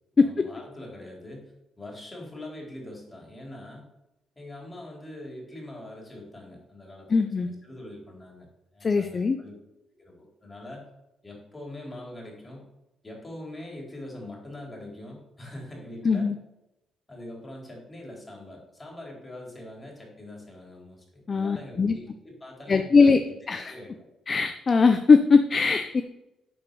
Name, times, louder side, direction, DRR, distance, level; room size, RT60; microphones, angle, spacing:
voice 1, 0.1-3.9 4.4-8.5 8.7-9.6 9.9-10.9 11.2-12.7 13.0-16.3 17.1-24.1, left 1 dB, 20° left, -1 dB, 3.9 m, -43 dB
voice 2, 7.1-7.5 8.8-9.4 16.0-16.3 21.3-22.0 22.7-23.2 23.5-23.7 24.3-26.0, left 4 dB, 35° left, 8 dB, 0.6 m, -20 dB
9.6 x 5.2 x 6.9 m, 0.94 s
cardioid pair, 90°, 0 cm